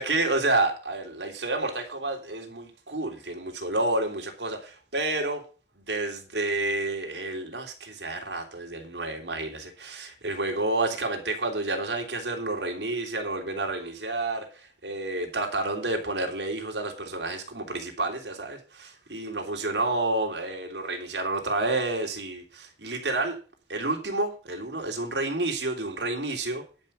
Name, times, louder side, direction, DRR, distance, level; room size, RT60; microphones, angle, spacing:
voice 1, 0.0-5.4 5.9-14.5 14.8-23.4 23.7-26.6, right 2 dB, 85° right, 3.1 m, -29 dB
10.5 x 5.8 x 7.4 m
head